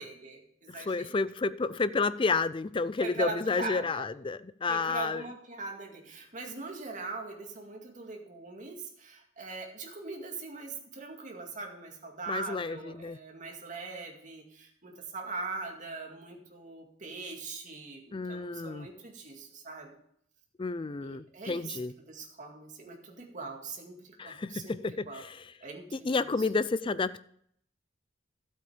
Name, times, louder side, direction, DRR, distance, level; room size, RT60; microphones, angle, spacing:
voice 1, 0.0-1.2 3.0-4.1 4.7-20.0 21.0-24.8 25.1-25.3 25.6-26.5, right 3 dB, 40° right, 2.2 m, -41 dB
voice 2, 0.7-5.2 12.3-13.2 18.1-18.9 20.6-21.9 24.2-25.4 25.9-27.2, left 4 dB, 25° left, 0.4 m, -31 dB
12.5 x 8.0 x 5.1 m
head